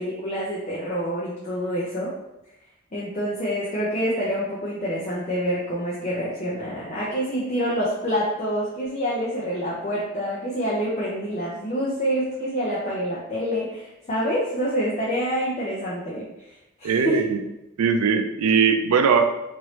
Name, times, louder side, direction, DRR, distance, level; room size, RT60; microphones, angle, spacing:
voice 1, 0.0-2.1 2.9-16.3 16.8-17.2, equal, 35° left, -6 dB, 0.6 m, -27 dB
voice 2, 16.8-17.4 17.8-19.3, right 6 dB, 90° right, 8 dB, 0.4 m, -20 dB
3.0 x 2.6 x 3.1 m, 0.92 s
head